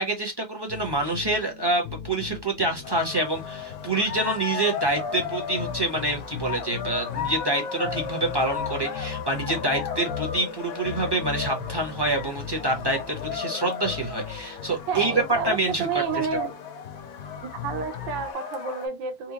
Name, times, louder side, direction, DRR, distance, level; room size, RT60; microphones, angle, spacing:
voice 1, 0.0-15.1 15.4-15.9 16.1-16.3, right 2 dB, 20° right, 0.6 m, -27 dB
sound 1, 0.7-18.3, left 7 dB, 50° left, 0.8 m, -39 dB
sound 2, 2.8-18.9, left 6 dB, 80° left, 1.7 m, -35 dB
voice 2, 14.9-16.5 17.4-19.3, right 5 dB, 70° right, 1.5 m, -30 dB
4.3 x 2.3 x 2.8 m
omnidirectional pair, 2.1 m